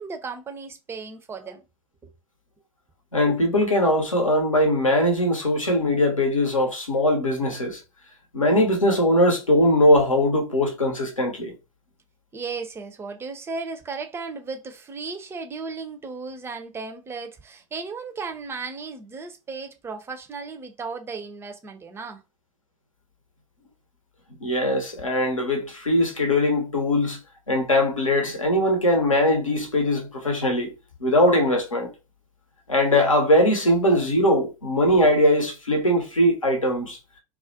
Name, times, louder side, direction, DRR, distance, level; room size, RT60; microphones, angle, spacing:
voice 1, 0.0-1.6 2.0-2.1 12.3-22.2, right 4 dB, 15° right, 0.4 m, -35 dB
voice 2, 3.1-7.8 8.3-11.5 24.4-27.2 27.5-30.7 31.0-31.9 32.7-37.0, left 1 dB, 85° left, 0.7 m, -21 dB
2.4 x 2.1 x 2.5 m
figure-of-eight pair, 85°, 17 cm